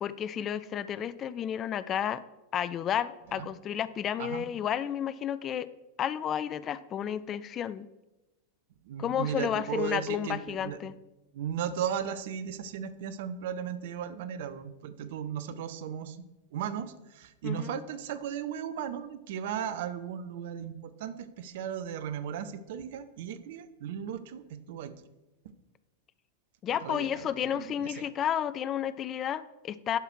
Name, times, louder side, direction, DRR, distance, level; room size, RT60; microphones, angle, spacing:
voice 1, 0.0-2.2 2.5-5.7 6.0-7.9 9.0-10.9 17.4-17.8 26.6-30.0, left 9 dB, 30° left, 16 dB, 0.3 m, -32 dB
voice 2, 8.8-10.8 11.3-16.2 16.5-24.9 26.8-28.1, right 9 dB, 55° right, 12 dB, 0.6 m, -36 dB
11.0 x 4.8 x 4.7 m, 1.0 s
figure-of-eight pair, 90°, 0 cm